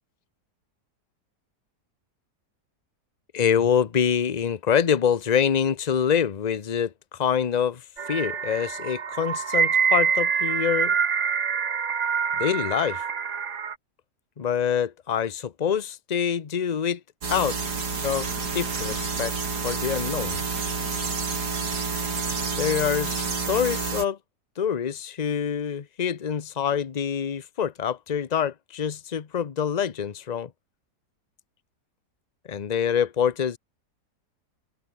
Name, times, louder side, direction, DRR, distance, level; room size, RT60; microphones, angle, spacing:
voice 1, 3.3-10.9 12.3-13.0 14.4-17.0 17.3-17.6 18.0-18.3 18.5-19.3 19.6-20.4 22.5-24.2 24.6-30.5 32.5-33.6, left 8 dB, 35° left, 0.8 m, -25 dB
sound 1, 8.0-13.7, right 7 dB, 50° right, 1.5 m, -25 dB
sound 2, 17.2-24.1, right 4 dB, 70° right, 3.5 m, -29 dB
omnidirectional pair, 1.8 m